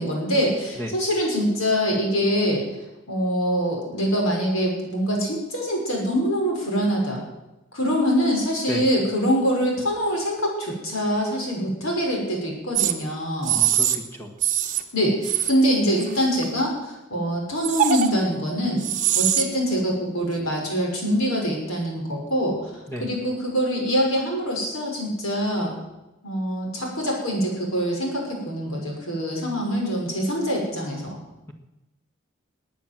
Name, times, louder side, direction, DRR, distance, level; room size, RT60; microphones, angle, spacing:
voice 1, 0.0-2.6 3.1-7.2 7.7-13.6 14.9-18.9 19.1-22.6 23.0-25.7 26.2-31.2, equal, 85° left, 0 dB, 5.9 m, -24 dB
sound 1, 12.8-12.9 13.4-14.0 14.4-14.8 15.2-15.5 16.0-16.6 17.6-18.1 18.8-19.4, right 10 dB, 40° right, 1.2 m, -22 dB
voice 2, 13.4-14.3 22.9-23.0, equal, 10° left, 3 dB, 1.7 m, -33 dB
20.0 x 9.3 x 7.7 m, 0.99 s
head